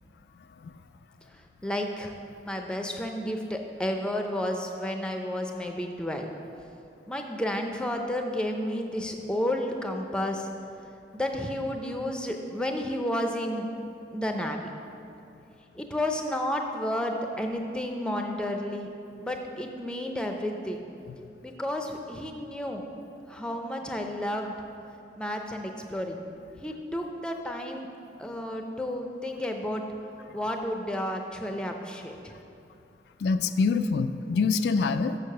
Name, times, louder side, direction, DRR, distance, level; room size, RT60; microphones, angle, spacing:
voice 1, 1.3-2.1 2.4-6.3 7.1-10.5 11.1-13.7 14.1-14.7 15.8-18.9 19.2-20.8 21.4-22.8 23.3-24.5 25.2-26.3 26.6-27.9 28.2-29.8 30.3-32.3, left 1 dB, 5° left, 3 dB, 0.5 m, -31 dB
voice 2, 33.2-35.2, left 4 dB, 70° left, 10 dB, 0.3 m, -25 dB
6.6 x 6.6 x 6.5 m, 2.6 s
head